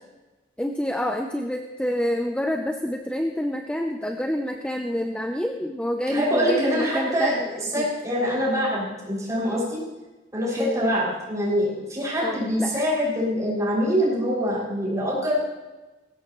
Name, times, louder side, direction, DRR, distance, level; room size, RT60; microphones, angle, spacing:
voice 1, 0.6-7.5 7.8-7.9 10.6-10.9 12.2-12.8, equal, 5° left, 4 dB, 0.7 m, -27 dB
voice 2, 6.1-9.8 10.3-15.3, equal, 20° right, -6 dB, 6.4 m, -24 dB
19.0 x 16.5 x 3.1 m, 1.1 s
head